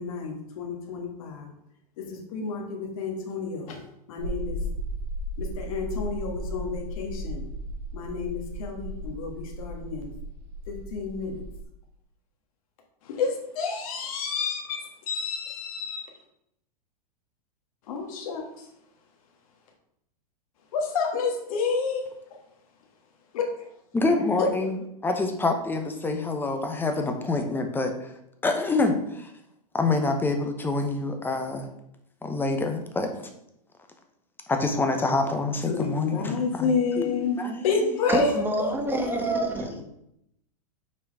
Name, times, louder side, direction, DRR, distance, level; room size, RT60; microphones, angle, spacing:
voice 1, 0.0-1.5 2.0-3.8 4.1-4.6 5.4-7.5 7.9-10.1 10.7-11.4 13.1-16.0 17.9-18.4 20.7-22.0 23.3-23.4 24.4-24.5 35.7-37.4 37.6-39.5, left 4 dB, 60° left, 1 dB, 1.6 m, -30 dB
sound 1, 4.2-11.6, right 1 dB, 50° right, 2.1 m, -35 dB
voice 2, 23.9-28.1 28.4-29.3 29.7-31.7 32.2-33.3 34.5-37.7, left 3 dB, 10° left, 5 dB, 0.9 m, -27 dB
voice 3, 38.1-39.8, right 1 dB, 10° right, 3 dB, 1.2 m, -28 dB
6.0 x 4.5 x 4.7 m, 0.78 s
hypercardioid pair, 120°, 20 cm